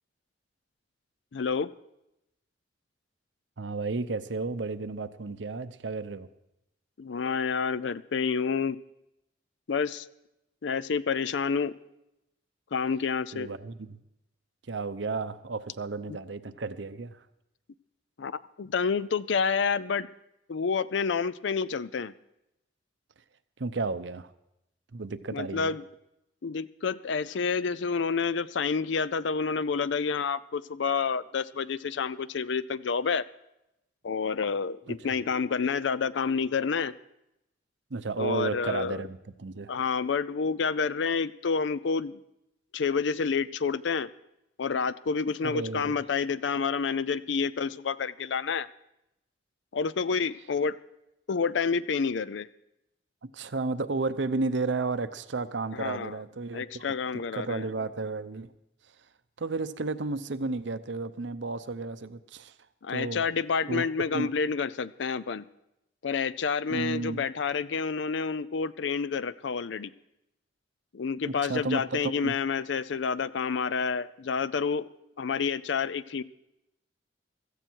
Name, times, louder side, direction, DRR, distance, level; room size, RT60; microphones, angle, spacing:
voice 1, 1.3-1.7 7.0-8.8 9.7-10.1 10.6-11.7 12.7-13.5 18.2-20.1 20.5-22.1 25.3-25.8 26.4-33.2 34.0-36.9 38.2-38.9 39.7-42.2 42.7-44.1 44.6-48.7 49.7-50.7 51.3-52.5 55.7-56.2 56.5-57.7 62.8-65.4 66.0-69.9 70.9-74.9 75.2-76.2, left 5 dB, 75° left, 17 dB, 0.5 m, -29 dB
voice 2, 3.6-6.3 13.3-14.0 14.7-17.2 23.6-24.3 24.9-25.8 34.9-35.0 37.9-39.7 45.4-46.0 53.3-58.5 59.4-62.5 62.9-63.3 63.7-63.8 64.1-64.3 66.7-67.2 71.2-72.4, right 3 dB, 75° right, 12 dB, 0.7 m, -33 dB
16.5 x 14.0 x 4.6 m, 0.88 s
head